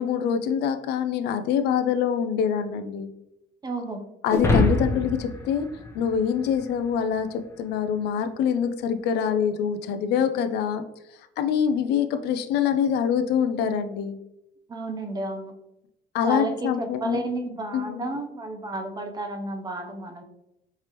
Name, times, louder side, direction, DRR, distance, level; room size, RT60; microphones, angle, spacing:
voice 1, 0.0-3.1 4.2-5.7 5.9-10.9 11.4-14.2 16.1-17.2 17.7-18.0, left 8 dB, 80° left, 9 dB, 0.4 m, -25 dB
voice 2, 3.6-4.1 14.7-15.5 16.2-20.2, right 2 dB, 25° right, 5 dB, 0.6 m, -31 dB
sound 1, 4.3-6.8, left 2 dB, 15° left, 0.8 m, -25 dB
4.5 x 3.3 x 2.9 m, 0.85 s
cardioid pair, 110°, 17 cm